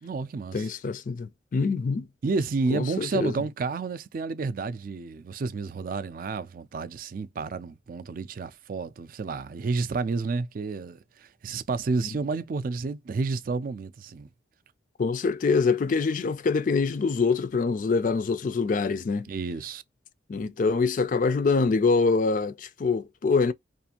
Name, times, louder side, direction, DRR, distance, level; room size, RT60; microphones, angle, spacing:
voice 1, 0.0-0.7 2.2-14.3 19.3-19.8, right 4 dB, 45° right, 0.3 m, -30 dB
voice 2, 0.5-2.1 2.7-3.4 12.0-12.1 15.0-19.3 20.3-23.5, left 4 dB, 45° left, 0.3 m, -25 dB
2.5 x 2.5 x 2.8 m
head